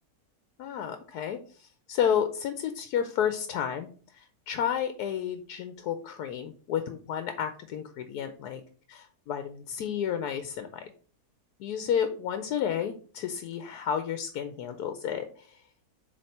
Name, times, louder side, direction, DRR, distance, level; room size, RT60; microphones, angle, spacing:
voice 1, 0.6-8.6 8.9-10.9 11.6-15.6, left 8 dB, 90° left, 8 dB, 1.2 m, -31 dB
7.7 x 3.1 x 4.2 m, 0.42 s
omnidirectional pair, 1.6 m